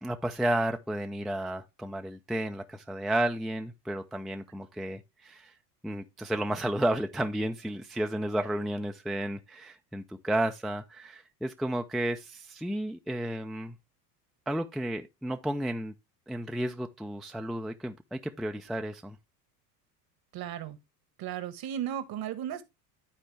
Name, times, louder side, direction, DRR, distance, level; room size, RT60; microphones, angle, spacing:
voice 1, 0.0-5.5 5.8-13.8 14.5-15.9 16.3-19.2, right 1 dB, ahead, 0.5 m, -32 dB
voice 2, 20.3-20.8 21.2-22.6, right 10 dB, 45° right, 1.3 m, -35 dB
12.0 x 4.3 x 3.3 m
hypercardioid pair, 80°, 49 cm